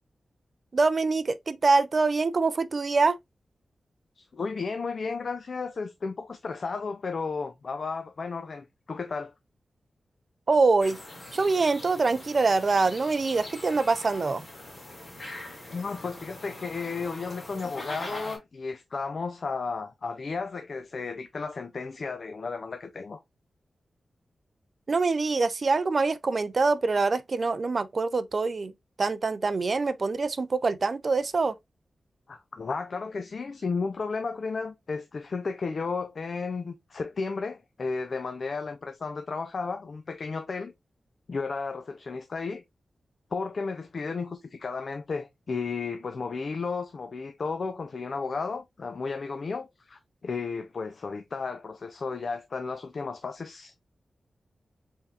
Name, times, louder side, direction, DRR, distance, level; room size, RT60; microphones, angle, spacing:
voice 1, 0.7-3.2 10.5-11.0 11.3-14.4 24.9-28.7 29.0-31.5, right 3 dB, 45° right, 0.3 m, -24 dB
voice 2, 4.2-9.3 15.7-23.2 32.3-40.7 41.3-42.6 43.3-53.7, left 4 dB, 50° left, 0.4 m, -33 dB
sound 1, 10.8-18.4, left 1 dB, 30° left, 2.1 m, -42 dB
4.4 x 3.6 x 2.3 m
wide cardioid pair, 145°, 0 cm